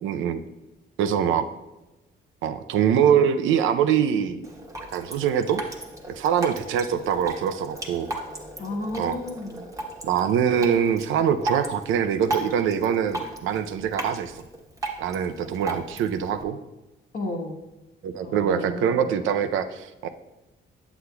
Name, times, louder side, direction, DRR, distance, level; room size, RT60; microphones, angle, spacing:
voice 1, 0.0-0.4 1.0-1.5 2.4-4.5 4.9-5.6 6.1-8.1 9.0-9.2 10.0-14.4 15.0-16.6 18.0-20.1, right 8 dB, 85° right, 9 dB, 0.5 m, -23 dB
Drip, 4.4-16.4, right 2 dB, 15° right, 1.3 m, -36 dB
voice 2, 8.6-9.6 17.1-17.6 18.2-19.1, left 1 dB, 50° left, -1 dB, 1.2 m, -33 dB
8.2 x 7.8 x 2.3 m, 1.0 s
cardioid pair, 90°, 20 cm